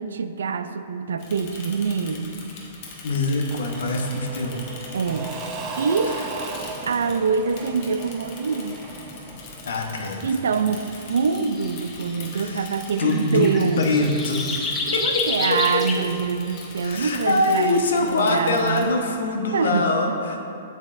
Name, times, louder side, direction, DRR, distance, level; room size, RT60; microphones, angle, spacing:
voice 1, 0.0-2.4 4.9-5.4 5.8-6.2 6.9-8.8 10.2-13.9 14.9-19.0 19.5-20.2, right 5 dB, 75° right, 10 dB, 0.3 m, -25 dB
Bicycle / Mechanisms, 1.2-18.9, left 3 dB, 45° left, 1.2 m, -42 dB
voice 2, 3.0-4.6 6.1-6.2 9.6-10.3 12.3-16.1 16.8-20.4, left 2 dB, 70° left, 3 dB, 0.8 m, -24 dB
Engine / Mechanisms / Drill, 3.5-10.2, right 3 dB, 30° right, 0.9 m, -36 dB
sound 1, 11.1-17.1, left 4 dB, 25° left, 0.8 m, -30 dB
7.8 x 7.2 x 2.5 m, 2.7 s
hypercardioid pair, 115°, 0 cm